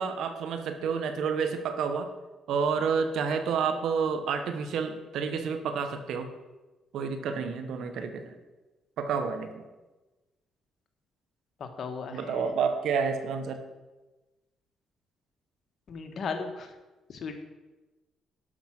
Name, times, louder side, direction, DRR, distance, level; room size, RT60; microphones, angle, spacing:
voice 1, 0.0-2.1 2.5-6.3 6.9-8.4 9.0-9.6 12.1-13.6, right 6 dB, 75° right, 8 dB, 1.1 m, -29 dB
voice 2, 11.6-12.4 15.9-16.7 17.1-17.4, left 5 dB, 55° left, 5 dB, 1.6 m, -36 dB
11.5 x 6.1 x 6.0 m, 1.2 s
cardioid pair, 90°, 0 cm